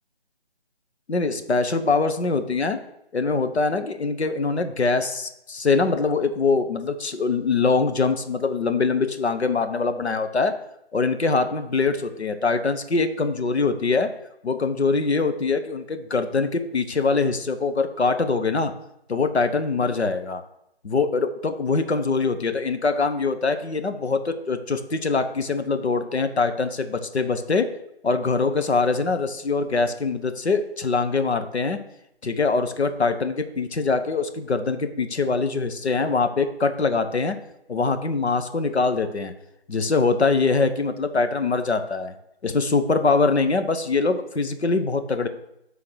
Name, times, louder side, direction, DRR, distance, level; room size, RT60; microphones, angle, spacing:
voice 1, 1.1-2.8 3.1-10.5 10.9-14.1 14.4-18.7 19.1-20.4 20.8-27.7 28.0-31.8 32.2-37.4 37.7-39.3 39.7-42.1 42.4-45.3, left 4 dB, 90° left, 8 dB, 1.0 m, -23 dB
6.2 x 3.8 x 6.2 m, 0.81 s
figure-of-eight pair, 165°, 32 cm